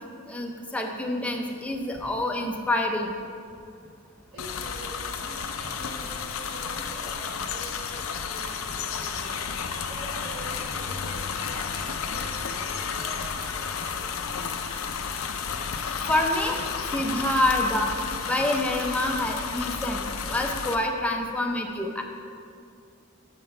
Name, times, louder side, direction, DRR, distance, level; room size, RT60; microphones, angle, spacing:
voice 1, 0.3-3.1 16.1-16.6 16.9-20.0 20.3-22.0, left 1 dB, 5° left, 1 dB, 0.6 m, -27 dB
voice 2, 4.3-9.4 9.9-14.0, right 1 dB, 55° right, -10 dB, 1.7 m, -44 dB
sound 1, 4.4-20.7, left 6 dB, 85° left, 0.5 m, -32 dB
6.7 x 5.4 x 5.4 m, 2.4 s
head